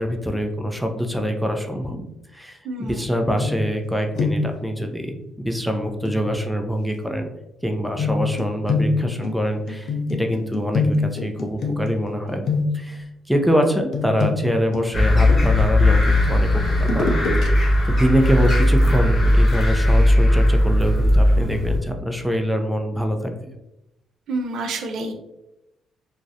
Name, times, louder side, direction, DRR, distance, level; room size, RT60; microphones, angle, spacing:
voice 1, 0.0-2.1 2.3-7.3 7.6-12.5 12.7-17.6 17.8-23.3, equal, ahead, 3 dB, 0.3 m, -24 dB
voice 2, 2.6-3.0 24.3-25.1, right 2 dB, 70° right, 4 dB, 0.4 m, -28 dB
sound 1, 3.4-3.9 4.2-4.6 6.1-6.2 8.0-12.1 12.4-13.0 13.9-15.8 16.8-17.5 17.9-18.0, left 4 dB, 65° left, 0.4 m, -25 dB
sound 2, 14.9-21.8, left 1 dB, 30° left, 0.8 m, -17 dB
2.3 x 2.0 x 2.6 m, 0.89 s
cardioid pair, 90°, 0 cm